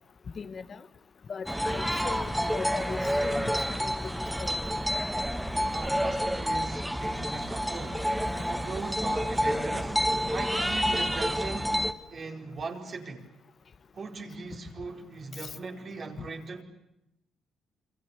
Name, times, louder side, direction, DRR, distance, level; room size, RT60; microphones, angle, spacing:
voice 1, 0.3-0.8 1.3-3.0 3.2-3.9 4.4-4.6 16.2-16.3, left 5 dB, 45° left, 1.5 m, -39 dB
sound 1, 1.5-11.9, equal, 5° right, 1.9 m, -29 dB
voice 2, 5.7-8.1 8.5-11.8 12.1-13.3 13.9-16.6, right 3 dB, 45° right, 4.7 m, -39 dB
28.0 x 25.5 x 8.2 m
cardioid pair, 90°, 0 cm